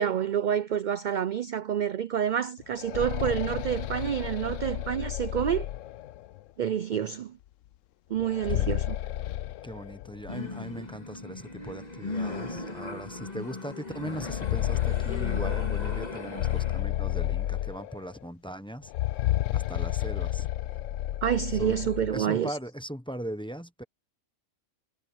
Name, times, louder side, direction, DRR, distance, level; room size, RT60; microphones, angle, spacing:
voice 1, 0.0-5.7 6.6-7.4 8.1-9.0 21.2-22.6, right 9 dB, 60° right, 0.5 m, -28 dB
sound 1, 2.6-6.4 8.2-10.4 10.7-10.8 11.7-11.8 12.2-12.4 14.0-18.2 18.8-22.2, left 14 dB, 75° left, 0.9 m, -31 dB
voice 2, 9.6-18.9 19.5-20.5 21.5-23.8, equal, 5° left, 0.9 m, -39 dB
sound 2, 10.3-16.8, left 2 dB, 30° left, 2.7 m, -38 dB
omnidirectional pair, 1.4 m